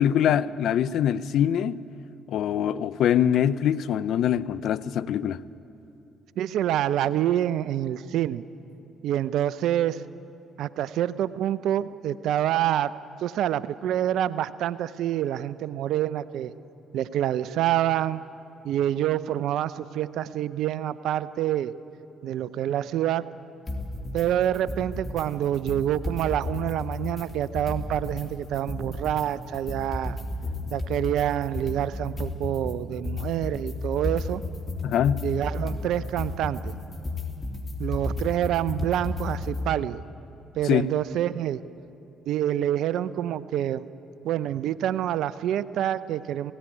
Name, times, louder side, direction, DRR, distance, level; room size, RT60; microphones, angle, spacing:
voice 1, 0.0-1.8 2.3-5.4 34.8-35.3 40.6-40.9, left 10 dB, 70° left, 0.5 m, -23 dB
voice 2, 6.4-8.5 9.0-10.0 10.6-12.9 13.2-16.5 16.9-18.2 18.6-21.7 22.2-23.2 24.1-30.2 30.7-34.4 35.2-36.7 37.8-40.0 40.5-41.6 42.3-43.8 44.2-46.5, right 11 dB, 70° right, 0.5 m, -27 dB
sound 1, 23.7-24.3 24.5-25.3 25.5-28.3 28.5-39.7, left 2 dB, 35° left, 3.4 m, -33 dB
17.5 x 16.5 x 10.0 m
hypercardioid pair, 50°, 0 cm